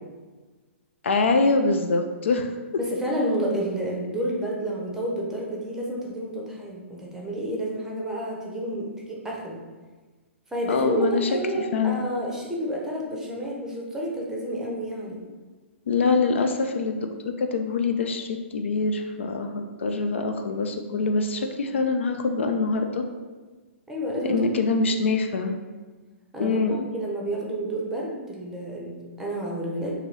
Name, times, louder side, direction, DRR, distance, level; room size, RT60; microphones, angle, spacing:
voice 1, 1.0-2.5 10.7-11.3 11.7-12.0 15.9-23.0 24.3-25.5 26.4-26.9, left 4 dB, 65° left, 5 dB, 0.3 m, -24 dB
voice 2, 2.8-9.6 10.5-15.2 19.8-20.0 23.9-24.5 26.3-29.9, right 1 dB, 5° right, -3 dB, 0.7 m, -30 dB
3.0 x 2.8 x 3.9 m, 1.3 s
figure-of-eight pair, 115°, 7 cm